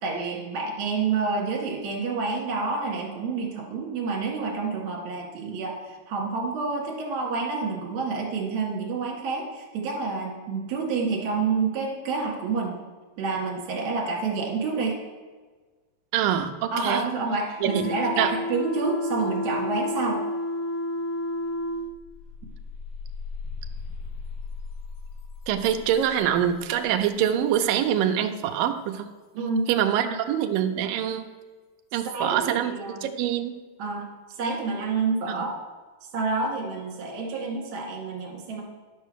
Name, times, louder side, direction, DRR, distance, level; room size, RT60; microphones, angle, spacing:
voice 1, 0.0-12.8 13.2-15.0 16.7-20.2 29.3-30.1 32.1-33.1 33.8-35.5 36.0-38.6, right 4 dB, 55° right, -1 dB, 3.1 m, -28 dB
voice 2, 16.1-17.0 17.6-17.8 18.2-18.3 25.5-29.1 29.7-31.3 31.9-32.7 33.0-33.6, right 10 dB, 75° right, 6 dB, 2.2 m, -24 dB
sound 1, 17.6-21.8, left 2 dB, 75° left, 4.3 m, -30 dB
sound 2, 21.0-21.1 21.4-28.2, left 4 dB, 60° left, 1.9 m, -39 dB
11.0 x 5.5 x 6.3 m, 1.3 s
omnidirectional pair, 4.4 m